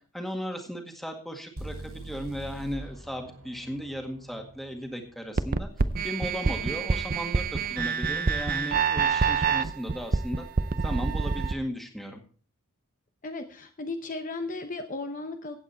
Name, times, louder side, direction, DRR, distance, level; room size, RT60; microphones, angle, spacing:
voice 1, 0.1-5.7 6.0-10.4 10.8-12.2, equal, ahead, 3 dB, 1.9 m, -36 dB
sound 1, 1.6-5.5, right 2 dB, 85° right, 5.5 m, -43 dB
sound 2, 5.4-11.5, right 4 dB, 40° right, 0.6 m, -26 dB
voice 2, 13.2-15.6, left 3 dB, 40° left, 6 dB, 0.8 m, -35 dB
15.0 x 8.8 x 4.4 m, 0.42 s
head